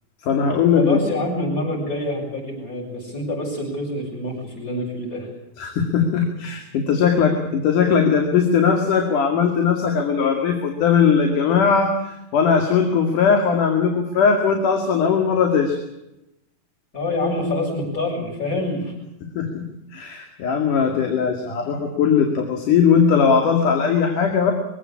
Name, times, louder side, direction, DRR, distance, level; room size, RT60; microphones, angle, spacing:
voice 1, 0.2-1.0 5.6-15.8 19.4-19.6 19.9-24.5, left 6 dB, 80° left, 4 dB, 3.9 m, -19 dB
voice 2, 0.8-5.3 16.9-18.9, left 2 dB, 25° left, -6 dB, 7.4 m, -26 dB
24.0 x 16.5 x 8.6 m, 0.89 s
omnidirectional pair, 3.6 m